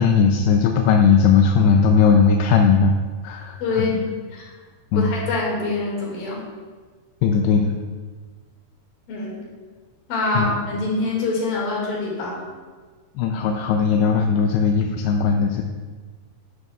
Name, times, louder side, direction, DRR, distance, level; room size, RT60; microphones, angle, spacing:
voice 1, 0.0-2.9 3.2-3.9 4.9-5.1 7.2-7.8 10.4-10.6 13.2-15.6, left 6 dB, 85° left, 3 dB, 2.6 m, -18 dB
voice 2, 3.6-4.0 4.3-4.5 4.9-6.4 9.1-9.5 10.1-12.4, left 3 dB, 65° left, -4 dB, 3.8 m, -25 dB
10.5 x 9.7 x 2.4 m, 1.5 s
omnidirectional pair, 4.6 m